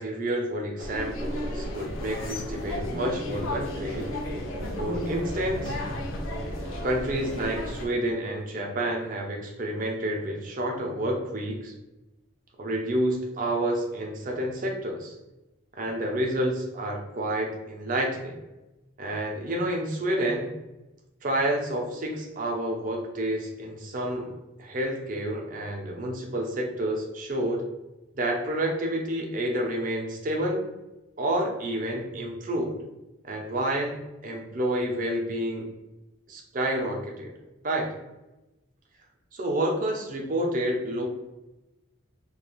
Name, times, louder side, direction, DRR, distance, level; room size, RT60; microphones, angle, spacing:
voice 1, 0.0-4.1 4.8-5.8 6.8-11.7 12.6-15.1 15.7-18.4 19.0-20.5 21.2-24.3 24.6-27.6 28.2-30.6 31.2-32.8 33.2-34.0 34.2-35.7 36.3-37.3 37.6-37.9 39.3-41.1, right 1 dB, 40° right, 1 dB, 0.4 m, -29 dB
sound 1, 0.8-7.9, left 1 dB, 85° left, 0.5 m, -33 dB
2.3 x 2.2 x 3.0 m, 1.0 s
head